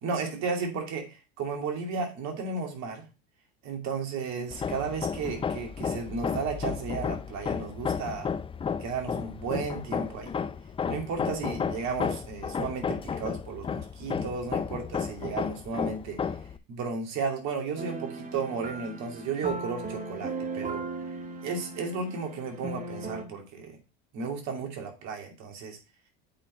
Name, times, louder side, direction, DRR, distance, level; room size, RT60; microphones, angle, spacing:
voice 1, 0.0-3.0 3.6-8.3 8.8-10.3 10.9-16.2 16.7-20.8 21.4-23.8 24.1-25.8, right 5 dB, 60° right, 2 dB, 2.6 m, -34 dB
Hammer, 4.5-16.6, left 6 dB, 15° left, 0.5 m, -33 dB
sound 1, 17.8-23.2, right 3 dB, 25° right, 1.2 m, -37 dB
8.5 x 4.1 x 4.2 m, 0.30 s
supercardioid pair, 95°, 32 cm